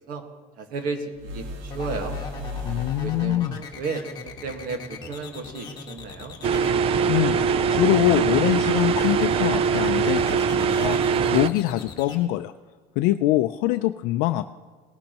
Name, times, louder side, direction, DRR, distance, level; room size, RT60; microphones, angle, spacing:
voice 1, 0.6-2.2 3.0-6.4, right 4 dB, 55° right, 5 dB, 1.7 m, -33 dB
sound 1, 1.1-3.5, left 2 dB, 75° right, 1.9 m, -35 dB
sound 2, 1.7-12.2, left 4 dB, 25° left, 1.6 m, -39 dB
voice 2, 2.6-3.6 7.1-12.5 13.0-14.5, left 15 dB, 65° left, 9 dB, 0.5 m, -24 dB
sound 3, 6.4-11.5, right 6 dB, 35° right, 0.4 m, -22 dB
19.0 x 11.5 x 3.0 m, 1.4 s
cardioid pair, 135°, 18 cm